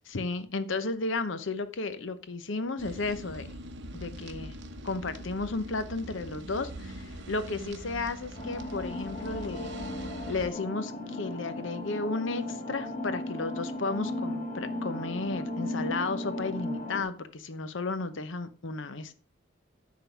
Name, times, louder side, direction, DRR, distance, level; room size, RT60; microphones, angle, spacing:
voice 1, 0.1-3.6 3.9-4.5 4.8-9.7 10.3-19.1, left 3 dB, 65° left, 12 dB, 0.8 m, -33 dB
sound 1, 2.8-10.5, right 1 dB, 60° right, 1.0 m, -42 dB
sound 2, 8.4-17.0, left 1 dB, 35° left, 1.9 m, -36 dB
9.9 x 3.8 x 5.7 m, 0.39 s
head